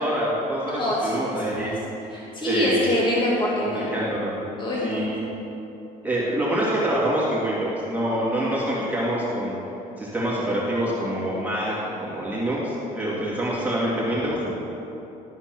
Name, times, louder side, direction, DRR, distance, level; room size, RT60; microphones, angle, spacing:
voice 1, 0.0-1.7 2.4-2.9 3.6-4.3 4.8-5.2 6.0-9.6 10.0-14.6, right 1 dB, 10° right, -7 dB, 2.2 m, -26 dB
voice 2, 0.7-1.2 1.5-1.7 2.1-3.9 4.6-5.1, left 1 dB, 30° left, -5 dB, 1.7 m, -25 dB
12.0 x 4.3 x 5.9 m, 2.9 s
cardioid pair, 110°, 17 cm